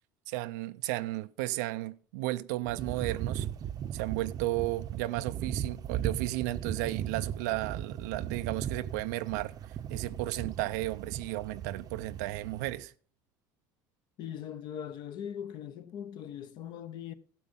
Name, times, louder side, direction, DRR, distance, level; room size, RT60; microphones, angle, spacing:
voice 1, 0.3-3.5 3.9-9.5 9.9-12.9, right 17 dB, 90° right, 0.5 m, -34 dB
sound 1, 2.6-12.8, right 10 dB, 45° right, 0.7 m, -37 dB
voice 2, 14.2-17.1, left 9 dB, 55° left, 0.8 m, -40 dB
12.5 x 8.0 x 5.3 m
supercardioid pair, 115°, 9 cm